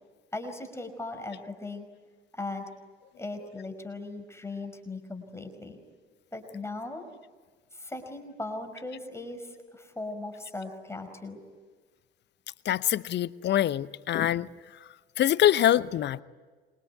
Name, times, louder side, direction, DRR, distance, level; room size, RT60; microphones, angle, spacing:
voice 1, 0.3-1.9 2.3-2.7 3.2-5.8 6.3-7.1 7.7-11.4, left 2 dB, 10° left, 5.1 m, -38 dB
voice 2, 12.6-14.5 15.2-16.2, left 11 dB, 35° left, 0.8 m, -24 dB
27.0 x 23.5 x 9.3 m
figure-of-eight pair, 55°, 29 cm